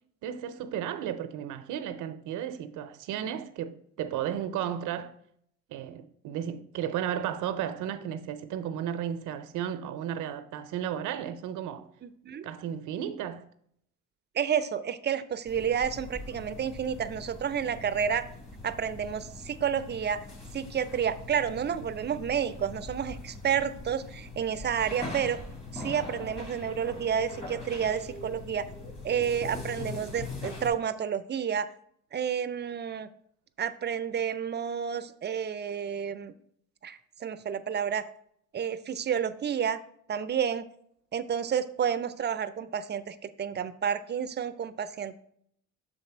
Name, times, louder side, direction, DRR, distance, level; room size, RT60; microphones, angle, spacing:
voice 1, 0.2-5.1 5.7-11.9 12.4-13.5, right 9 dB, 90° right, 0.6 m, -34 dB
voice 2, 12.0-12.5 14.3-18.3 18.6-20.3 20.5-25.4 25.7-28.7 29.0-31.7 32.1-33.1 33.6-36.3 36.8-38.0 38.5-39.8 40.1-40.6 41.1-45.1, right 8 dB, 35° right, 0.5 m, -30 dB
sound 1, 15.5-30.7, left 2 dB, 20° left, 2.0 m, -42 dB
6.5 x 4.1 x 4.3 m
cardioid pair, 90°, 30 cm